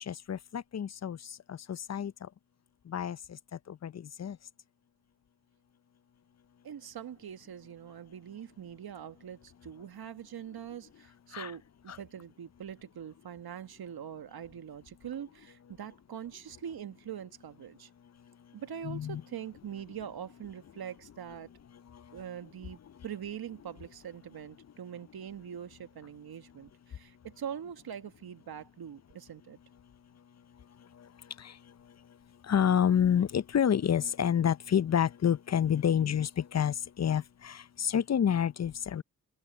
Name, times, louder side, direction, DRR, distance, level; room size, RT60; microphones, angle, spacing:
voice 1, 0.0-1.2 1.5-2.1 2.9-3.4 3.7-4.4 11.3-11.5 11.9-12.0 18.8-19.2 31.4-31.5 32.5-39.0, left 8 dB, 45° left, 0.7 m, -28 dB
voice 2, 6.6-17.9 18.5-21.5 22.1-29.6, right 9 dB, 70° right, 1.6 m, -43 dB
supercardioid pair, 40°, 39 cm